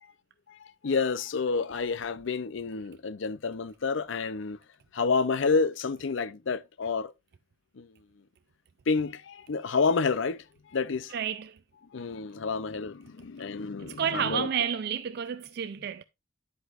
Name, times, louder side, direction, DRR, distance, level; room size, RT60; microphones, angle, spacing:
voice 1, 0.5-4.6 4.9-7.1 7.8-7.9 8.9-10.4 10.7-11.1 11.9-14.5, left 4 dB, 65° left, 0.5 m, -29 dB
voice 2, 11.1-11.6 13.8-16.0, right 8 dB, 50° right, 0.3 m, -31 dB
10.0 x 8.0 x 2.5 m
head